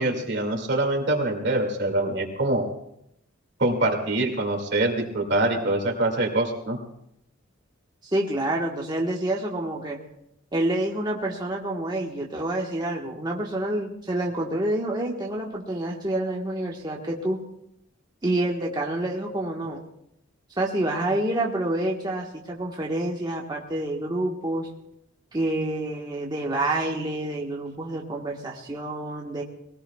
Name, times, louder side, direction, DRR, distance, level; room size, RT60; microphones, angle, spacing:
voice 1, 0.0-2.6 3.6-6.8, right 2 dB, 60° right, 3 dB, 2.3 m, -24 dB
voice 2, 8.0-10.0 10.5-17.4 18.2-19.8 20.6-24.7 25.3-29.4, right 1 dB, 20° right, -2 dB, 1.4 m, -28 dB
22.0 x 17.5 x 2.4 m, 0.76 s
head